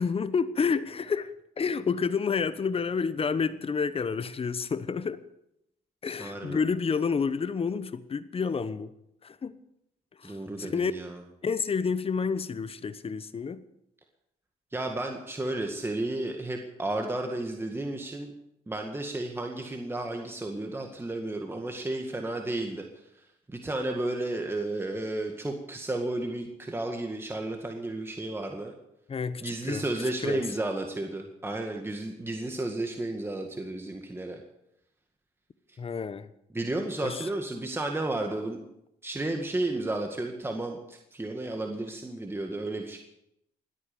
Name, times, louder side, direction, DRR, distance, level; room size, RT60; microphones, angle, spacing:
voice 1, 0.0-5.2 6.0-8.9 9.2-9.6 10.2-10.9 11.4-13.6 29.1-29.8 30.2-30.4 35.8-36.3 37.0-37.3, left 5 dB, 40° left, 14 dB, 1.0 m, -29 dB
voice 2, 6.2-6.6 10.2-11.2 14.7-18.3 18.7-22.8 23.5-28.7 29.4-34.4 36.5-38.6 39.0-43.0, right 2 dB, 15° right, 3 dB, 2.0 m, -32 dB
21.0 x 8.9 x 6.9 m, 0.80 s
cardioid pair, 80°, 16 cm